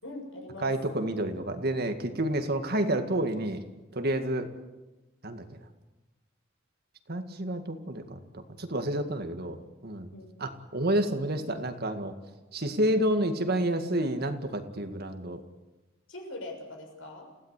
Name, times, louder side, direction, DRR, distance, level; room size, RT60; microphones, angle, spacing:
voice 1, 0.0-0.7 10.1-10.4 16.1-17.3, left 1 dB, 70° left, 2 dB, 6.8 m, -42 dB
voice 2, 0.6-3.6 3.9-4.5 5.2-5.5 7.1-10.1 10.4-12.1 12.5-15.4, right 1 dB, 50° right, 7 dB, 2.0 m, -29 dB
28.5 x 16.5 x 8.3 m, 1.1 s
head